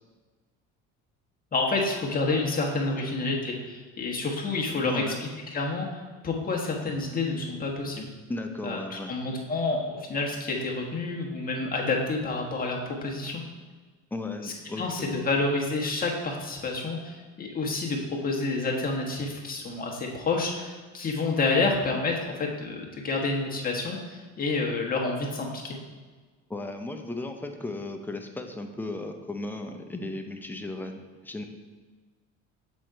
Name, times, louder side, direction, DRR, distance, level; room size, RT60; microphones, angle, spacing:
voice 1, 1.5-8.1 8.6-13.4 14.4-25.8, left 3 dB, 25° left, -1 dB, 1.2 m, -29 dB
voice 2, 4.8-5.2 8.3-9.1 14.1-15.1 26.5-31.4, left 2 dB, 5° left, 5 dB, 0.5 m, -35 dB
6.2 x 3.8 x 4.6 m, 1.4 s
supercardioid pair, 100°, 35 cm